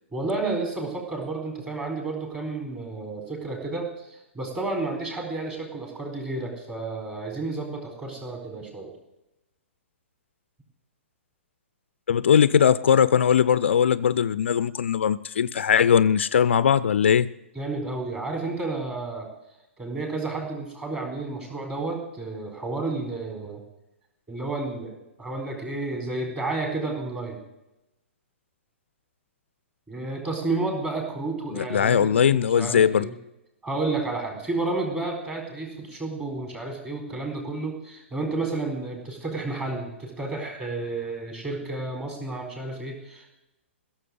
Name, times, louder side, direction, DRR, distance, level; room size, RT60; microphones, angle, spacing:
voice 1, 0.1-8.9 17.5-19.3 19.8-23.6 24.3-27.4 29.9-33.1 33.6-43.3, right 3 dB, 15° right, 2 dB, 4.3 m, -31 dB
voice 2, 12.1-17.3 31.5-33.1, left 8 dB, 60° left, 17 dB, 0.5 m, -20 dB
16.0 x 7.3 x 9.5 m, 0.92 s
figure-of-eight pair, 115°, 7 cm